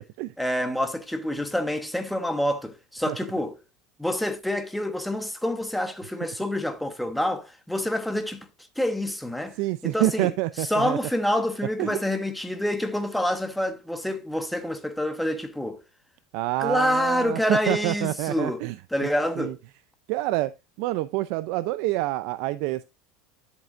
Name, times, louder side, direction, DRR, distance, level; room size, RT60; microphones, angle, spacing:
voice 1, 0.4-3.6 4.0-8.5 8.8-9.5 9.8-10.3 10.7-15.8 16.6-18.6 18.9-19.6, left 1 dB, ahead, 1.0 m, -27 dB
voice 2, 9.5-11.0 11.8-12.0 16.3-18.8 19.0-19.1 19.4-19.5 20.1-20.5 20.8-22.8, right 17 dB, 60° right, 0.4 m, -27 dB
10.5 x 7.6 x 2.5 m
supercardioid pair, 140°, 0 cm